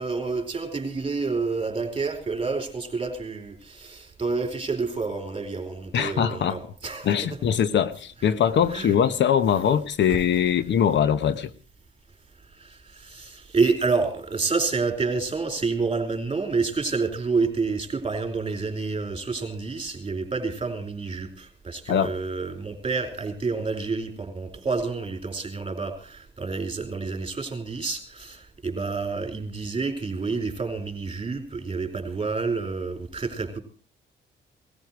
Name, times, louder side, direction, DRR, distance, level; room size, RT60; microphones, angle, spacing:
voice 1, 0.0-7.4 8.7-8.9 10.1-10.2 12.5-33.6, right 4 dB, 25° right, 4.7 m, -29 dB
voice 2, 5.9-6.6 7.0-11.5 21.9-22.1, left 8 dB, 65° left, 1.1 m, -22 dB
19.5 x 14.5 x 4.6 m
cardioid pair, 90°, 20 cm